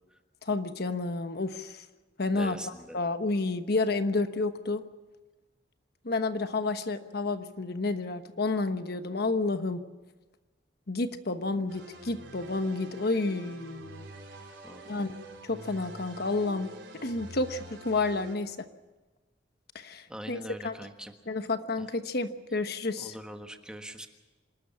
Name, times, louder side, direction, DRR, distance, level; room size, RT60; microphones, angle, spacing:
voice 1, 0.4-1.9 2.2-4.8 6.0-9.8 10.9-14.1 14.9-15.2 15.4-16.7 17.0-18.7 19.7-20.9 21.3-23.2, left 3 dB, 60° left, 9 dB, 1.1 m, -30 dB
voice 2, 2.3-3.0 14.6-14.9 20.1-21.1 23.0-24.1, equal, 5° right, 5 dB, 1.5 m, -42 dB
sound 1, 11.7-18.4, right 1 dB, 85° right, 4.9 m, -46 dB
27.0 x 13.0 x 8.6 m, 1.2 s
head